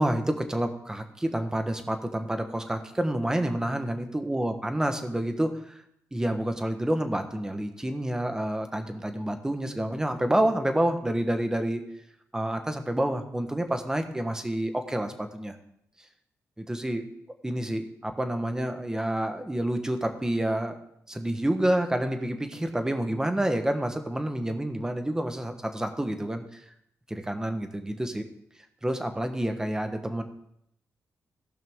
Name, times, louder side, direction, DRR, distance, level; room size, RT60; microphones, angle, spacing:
voice 1, 0.0-5.8 6.1-11.8 12.3-15.5 16.6-17.0 17.4-20.8 21.1-26.6 27.1-28.2 28.8-30.2, right 1 dB, 10° right, 6 dB, 1.2 m, -28 dB
17.0 x 5.8 x 3.6 m, 0.74 s
cardioid pair, 105°, 6 cm